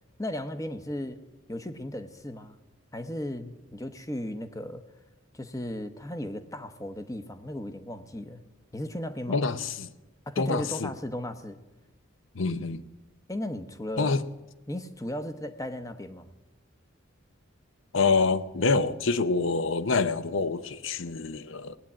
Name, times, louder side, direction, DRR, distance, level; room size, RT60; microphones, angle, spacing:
voice 1, 0.2-1.2 1.5-2.6 2.9-4.8 5.3-8.4 8.7-9.4 10.3-11.6 13.3-14.2 14.7-16.3, left 1 dB, 15° left, 9 dB, 0.8 m, -36 dB
voice 2, 9.3-9.9 10.4-10.9 12.3-12.8 14.0-14.2 17.9-21.8, left 4 dB, 65° left, 14 dB, 0.7 m, -26 dB
18.5 x 9.0 x 8.6 m, 1.1 s
head